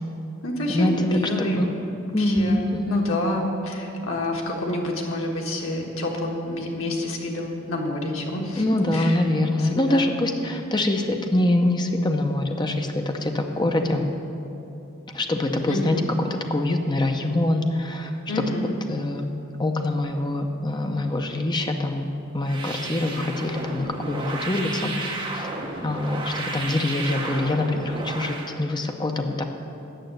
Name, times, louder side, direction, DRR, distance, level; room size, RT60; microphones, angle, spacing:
voice 1, 0.4-1.7 2.2-8.6 8.9-9.2 9.6-10.0 15.7-16.1 18.3-18.8, left 1 dB, 75° left, 0 dB, 1.5 m, -28 dB
voice 2, 1.4-1.7 2.1-3.1 8.6-14.0 15.1-16.0 16.5-18.4 18.9-19.3 19.6-25.5 25.8-29.4, left 1 dB, 20° left, 4 dB, 0.7 m, -24 dB
sound 1, 22.4-28.5, right 2 dB, 25° right, 1.0 m, -32 dB
9.0 x 6.4 x 7.8 m, 2.9 s
head